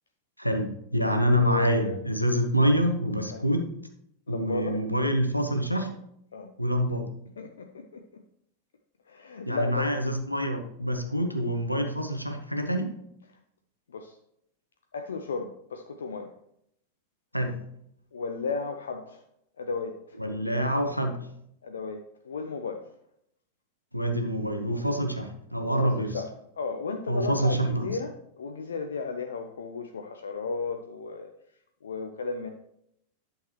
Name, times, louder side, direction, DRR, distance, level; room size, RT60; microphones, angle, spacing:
voice 1, 0.4-3.7 4.3-5.9 6.6-7.1 9.5-12.9 17.3-17.5 20.2-21.2 23.9-26.2 27.1-27.9, equal, 90° left, 5 dB, 1.1 m, -26 dB
voice 2, 1.2-2.0 3.3-3.4 4.3-4.8 6.3-6.5 7.4-8.2 9.1-9.9 13.9-14.2 14.9-16.3 18.1-19.2 19.6-20.2 21.6-22.9 25.7-31.3 31.8-32.5, left 4 dB, 70° left, 5 dB, 0.6 m, -34 dB
11.0 x 6.6 x 3.0 m, 0.73 s
figure-of-eight pair, 90°, 0 cm